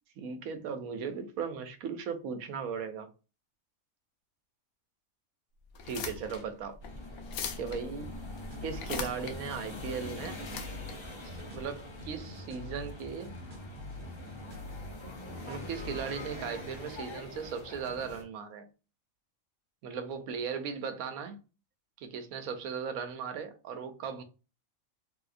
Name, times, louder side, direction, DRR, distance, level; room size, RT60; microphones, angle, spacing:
voice 1, 0.2-3.1 5.8-6.8 7.6-8.2 8.6-10.4 11.2-13.4 15.5-18.7 19.8-21.4 22.0-24.2, right 6 dB, 85° right, 1.1 m, -37 dB
sound 1, 5.7-12.2, left 5 dB, 75° left, 1.0 m, -42 dB
sound 2, 6.8-18.2, left 2 dB, 30° left, 0.5 m, -44 dB
sound 3, 8.0-16.0, left 1 dB, 45° right, 0.7 m, -46 dB
3.3 x 2.7 x 2.5 m
omnidirectional pair, 1.5 m